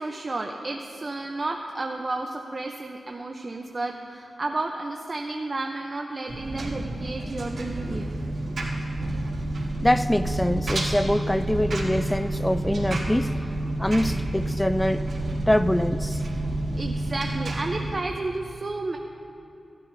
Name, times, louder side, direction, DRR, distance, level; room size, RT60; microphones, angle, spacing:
voice 1, 0.0-8.1 8.5-8.6 16.8-19.0, right 2 dB, 40° right, 2 dB, 0.7 m, -32 dB
Engine, 6.3-17.9, right 1 dB, 65° right, 2.4 m, -29 dB
voice 2, 9.8-13.3 13.8-15.0 15.5-16.2, left 1 dB, 10° left, 12 dB, 0.3 m, -24 dB
18.0 x 12.0 x 2.7 m, 2.9 s
wide cardioid pair, 75°, 0 cm